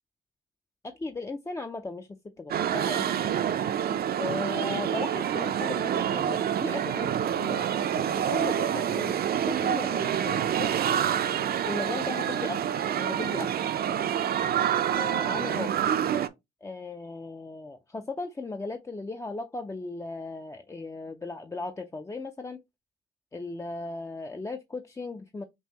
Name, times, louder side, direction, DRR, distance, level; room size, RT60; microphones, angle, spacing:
voice 1, 0.8-3.2 4.2-7.7 7.9-10.7 11.6-13.5 14.9-15.8 16.6-22.6 23.3-25.4, left 3 dB, 15° left, 0.4 m, -37 dB
sound 1, 2.5-16.3, right 9 dB, 50° right, 0.5 m, -27 dB
5.3 x 2.6 x 2.8 m
cardioid pair, 90°, 20 cm